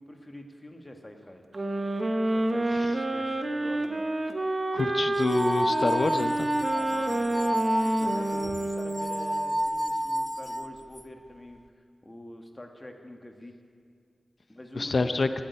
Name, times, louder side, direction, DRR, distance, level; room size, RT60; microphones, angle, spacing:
voice 1, 0.0-1.4 2.3-4.1 6.7-13.6 14.5-15.1, left 1 dB, 20° left, 4 dB, 1.6 m, -45 dB
sound 1, 1.5-9.5, right 1 dB, 35° right, 1.1 m, -29 dB
voice 2, 4.7-6.5 14.8-15.3, left 3 dB, 50° left, 10 dB, 0.7 m, -27 dB
sound 2, 5.2-11.0, equal, ahead, 0.4 m, -30 dB
17.0 x 8.7 x 9.7 m, 2.2 s
wide cardioid pair, 115°, 0 cm